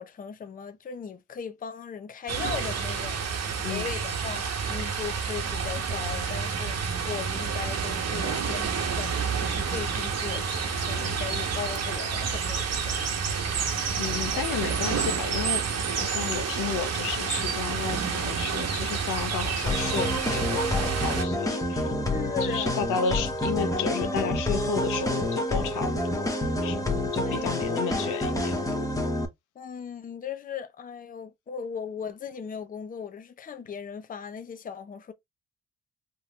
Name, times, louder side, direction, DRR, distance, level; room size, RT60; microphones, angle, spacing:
voice 1, 0.0-13.1 13.5-13.7 22.1-23.0 27.2-28.4 29.6-35.1, left 7 dB, 30° left, 0.6 m, -38 dB
sound 1, 2.3-21.2, right 6 dB, 60° right, 1.1 m, -29 dB
voice 2, 13.7-21.9 22.4-26.3 26.6-28.5, left 7 dB, 85° left, 0.8 m, -33 dB
sound 2, 19.7-29.2, left 1 dB, 10° left, 0.9 m, -28 dB
3.7 x 2.9 x 2.3 m
cardioid pair, 90°, 30 cm